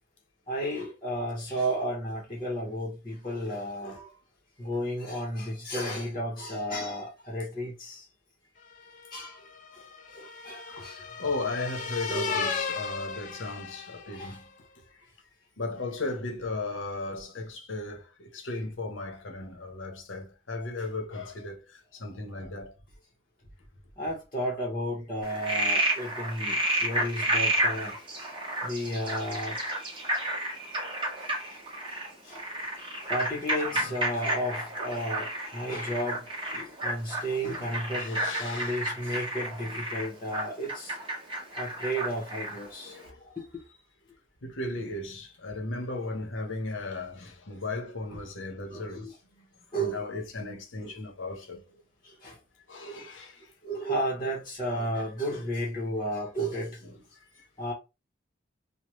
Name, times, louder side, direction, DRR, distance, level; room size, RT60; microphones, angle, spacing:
voice 1, 0.5-4.1 4.6-8.0 9.1-9.4 10.1-11.0 12.1-12.5 14.1-14.4 24.0-28.3 28.6-29.6 32.3-32.4 33.1-40.9 41.6-43.0 43.2-43.6 48.1-48.2 48.7-49.1 49.7-50.1 50.8-51.0 52.0-52.4 52.8-53.1 53.6-56.8 57.6-57.7, equal, 25° left, 0.9 m, -33 dB
sound 1, 8.8-14.3, left 5 dB, 40° left, 0.5 m, -36 dB
voice 2, 10.8-14.5 15.6-22.7 26.5-26.9 32.2-32.4 33.7-34.0 38.0-38.8 42.8-43.3 44.4-49.5 49.8-51.8 52.7-53.5 57.4-57.5, left 2 dB, 90° left, 1.0 m, -36 dB
Frog, 25.2-42.7, right 1 dB, 25° right, 1.0 m, -31 dB
3.3 x 2.2 x 3.0 m
head